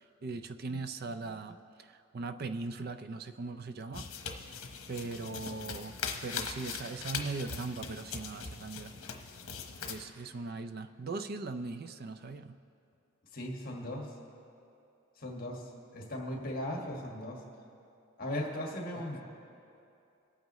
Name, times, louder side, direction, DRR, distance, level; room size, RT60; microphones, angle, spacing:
voice 1, 0.2-1.6 2.1-4.1 4.9-5.9 6.2-8.9 9.8-12.6, right 3 dB, 45° right, 10 dB, 0.5 m, -39 dB
sound 1, 3.9-10.0, left 6 dB, 75° left, 1.0 m, -41 dB
voice 2, 13.3-14.1 15.2-15.6 15.9-17.4 18.2-19.3, left 1 dB, 45° left, -1 dB, 1.7 m, -37 dB
23.0 x 9.0 x 3.1 m, 2.7 s
head